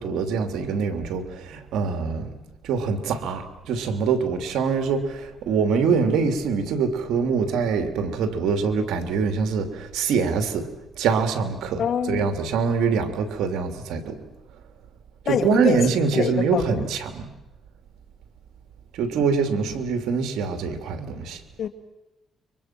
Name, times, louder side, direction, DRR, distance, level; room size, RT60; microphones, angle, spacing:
voice 1, 0.0-2.4 2.6-14.2 15.2-17.3 18.9-21.4, right 5 dB, 85° right, 2.9 m, -24 dB
voice 2, 11.8-12.3 15.3-15.8 16.1-16.8 21.6-21.7, left 7 dB, 60° left, 2.5 m, -25 dB
29.5 x 24.5 x 6.1 m
cardioid pair, 90°, 0 cm